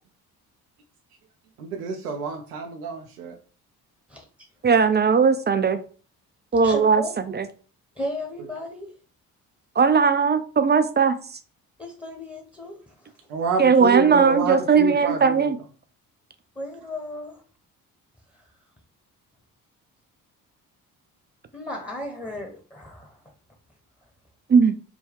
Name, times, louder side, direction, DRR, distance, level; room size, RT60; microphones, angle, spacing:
voice 1, 1.6-3.3 13.3-15.4, right 5 dB, 85° right, 3 dB, 0.6 m, -29 dB
voice 2, 4.6-5.8 6.5-7.0 7.3-7.5 9.8-11.2 13.6-15.6 24.5-24.7, right 5 dB, 25° right, 9 dB, 0.5 m, -18 dB
voice 3, 6.6-7.1 8.0-8.9 11.8-13.1 16.6-17.4 21.5-23.2, left 1 dB, 10° left, 2 dB, 1.0 m, -35 dB
4.6 x 2.2 x 3.5 m, 0.38 s
hypercardioid pair, 45°, 45 cm